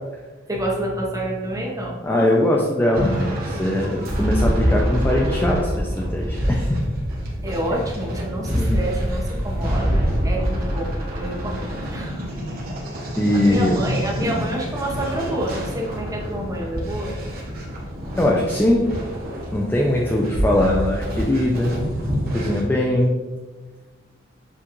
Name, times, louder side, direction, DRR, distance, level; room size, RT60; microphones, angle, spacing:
voice 1, 0.5-2.2 7.4-12.2 13.3-17.1, right 1 dB, 15° right, -2 dB, 0.8 m, -28 dB
voice 2, 2.0-6.8 8.5-8.8 13.2-13.8 14.2-14.4 18.2-18.9 19.5-21.7 22.3-23.2, left 1 dB, 10° left, -1 dB, 0.4 m, -21 dB
sound 1, 2.9-22.6, equal, 50° right, 1.0 m, -26 dB
6.9 x 2.4 x 3.0 m, 1.3 s
head